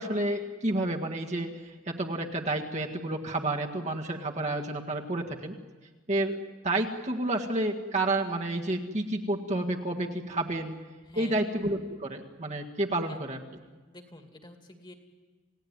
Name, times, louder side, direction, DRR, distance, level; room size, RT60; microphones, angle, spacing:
voice 1, 0.0-5.6 6.1-10.8 11.2-13.4, right 2 dB, 35° right, 1 dB, 1.7 m, -30 dB
voice 2, 11.1-11.4 13.1-13.2 13.9-14.9, left 2 dB, 25° left, 5 dB, 2.3 m, -48 dB
28.5 x 17.5 x 9.6 m, 1.3 s
head